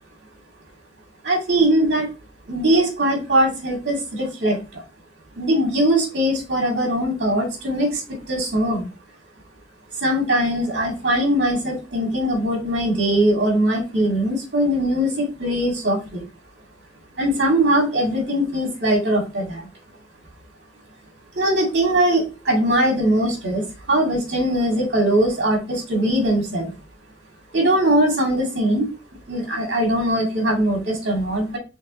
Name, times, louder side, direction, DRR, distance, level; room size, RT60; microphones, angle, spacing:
voice 1, 1.2-2.1 2.5-4.8 5.4-8.0 8.3-8.9 10.0-16.3 17.2-19.7 21.4-26.7 27.5-28.9 29.3-31.6, right 1 dB, 65° right, 0 dB, 2.1 m, -21 dB
5.2 x 3.6 x 2.6 m, 0.30 s
head